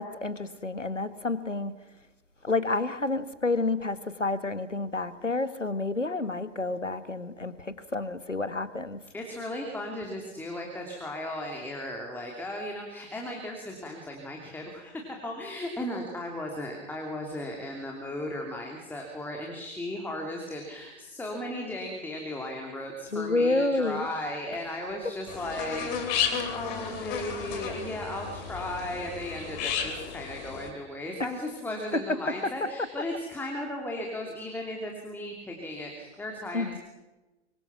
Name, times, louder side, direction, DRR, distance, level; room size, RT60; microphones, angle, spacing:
voice 1, 0.0-1.7 2.4-9.0 23.1-24.1 31.2-31.3 36.5-36.8, left 3 dB, 85° left, 1.6 m, -29 dB
voice 2, 9.1-36.8, left 1 dB, 5° left, 2.9 m, -36 dB
sound 1, 25.3-30.7, left 7 dB, 35° left, 3.4 m, -33 dB
25.5 x 23.0 x 6.0 m
figure-of-eight pair, 110°, 36 cm